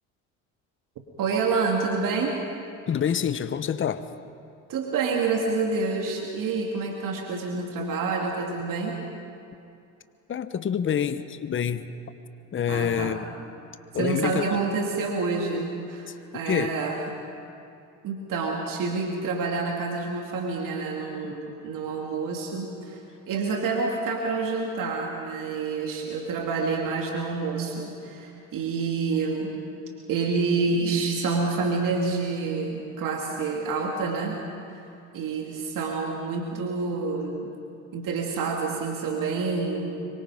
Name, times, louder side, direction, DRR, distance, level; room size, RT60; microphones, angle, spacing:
voice 1, 1.2-2.3 4.7-9.0 12.7-13.2 13.9-17.0 18.0-23.0 23.3-29.5 30.1-34.4 34.7-34.8 35.1-37.5 37.9-40.0, right 4 dB, 55° right, 0 dB, 2.7 m, -28 dB
voice 2, 2.9-4.1 10.3-11.9 12.5-13.3 13.9-14.4 16.4-16.8 21.3-21.4, left 8 dB, 30° left, 12 dB, 1.0 m, -27 dB
26.0 x 23.5 x 5.1 m, 2.6 s
supercardioid pair, 80°, 38 cm